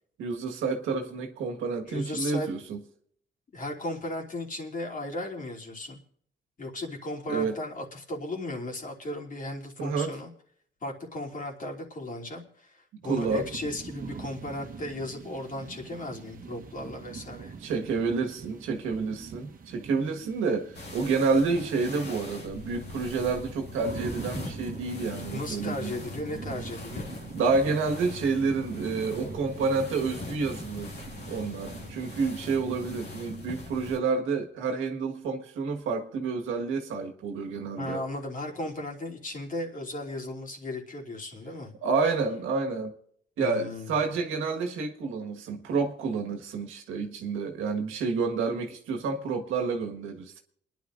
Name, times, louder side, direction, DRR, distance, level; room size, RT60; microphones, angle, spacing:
voice 1, 0.2-2.8 7.3-7.6 9.8-10.1 13.0-13.4 17.6-25.9 27.3-30.9 31.3-38.0 41.8-42.9 43.4-50.4, right 4 dB, 85° right, 1.6 m, -29 dB
voice 2, 1.9-2.5 3.5-6.0 6.6-10.3 10.8-17.5 25.3-27.1 37.8-41.7 43.4-44.1, left 1 dB, 40° left, 3.0 m, -36 dB
sound 1, 13.1-33.0, right 5 dB, 45° right, 1.2 m, -44 dB
sound 2, 20.7-34.0, left 3 dB, 55° left, 2.3 m, -41 dB
28.5 x 10.5 x 2.6 m
cardioid pair, 90°, 20 cm